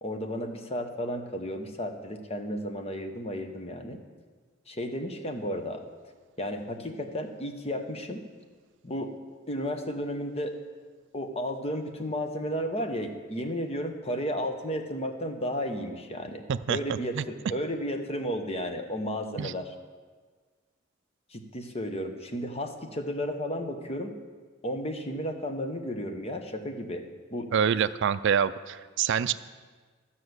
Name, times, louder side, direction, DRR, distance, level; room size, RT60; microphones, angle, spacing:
voice 1, 0.0-4.0 4.7-5.8 6.4-8.2 8.8-9.1 9.5-10.6 11.1-16.4 16.7-19.7 21.3-24.1 24.6-27.0 27.3-27.5 29.3-29.4, equal, 30° left, 6 dB, 1.0 m, -33 dB
voice 2, 27.5-29.3, right 7 dB, 65° right, 14 dB, 0.4 m, -26 dB
13.0 x 5.7 x 8.0 m, 1.5 s
head